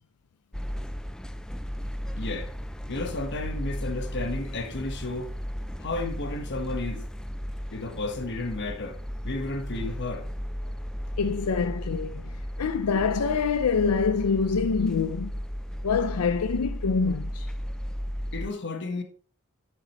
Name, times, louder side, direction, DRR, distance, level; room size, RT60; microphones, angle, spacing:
sound 1, 0.5-18.5, equal, 5° left, 0.3 m, -35 dB
voice 1, 2.2-2.5 2.9-5.3 5.8-7.0 7.7-10.3 18.3-19.0, left 2 dB, 55° left, 1.2 m, -33 dB
voice 2, 11.2-12.3 12.6-15.3 15.8-17.5, left 5 dB, 85° left, 0.5 m, -25 dB
9.6 x 7.7 x 3.0 m
head